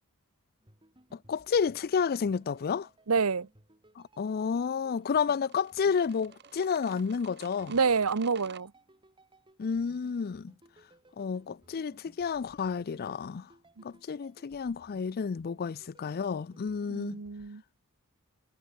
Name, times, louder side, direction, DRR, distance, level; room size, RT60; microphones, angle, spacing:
sound 1, 0.6-17.5, right 1 dB, 20° right, 6.8 m, -61 dB
voice 1, 1.3-2.9 4.0-7.7 9.6-10.5 11.2-13.5 13.8-17.2, left 6 dB, 45° left, 0.4 m, -30 dB
voice 2, 3.1-3.5 7.7-8.7 13.8-13.9 16.9-17.6, right 5 dB, 75° right, 0.9 m, -28 dB
sound 2, 5.0-8.6, right 6 dB, 50° right, 2.9 m, -51 dB
head